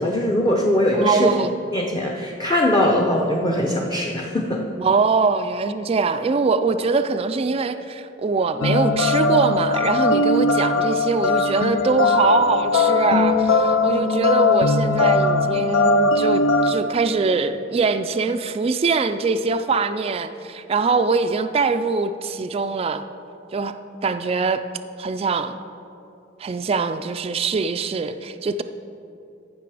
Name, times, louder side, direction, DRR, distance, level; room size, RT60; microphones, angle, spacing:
voice 1, 0.0-1.3 1.7-4.6, left 1 dB, 20° left, -1 dB, 0.7 m, -21 dB
voice 2, 0.9-1.5 4.8-23.0 23.5-23.8 24.0-24.6 25.0-25.5 26.4-28.6, right 4 dB, 30° right, 9 dB, 0.3 m, -22 dB
sound 1, 8.6-16.7, left 3 dB, 80° left, 0.6 m, -19 dB
14.5 x 6.0 x 4.8 m, 2.7 s
head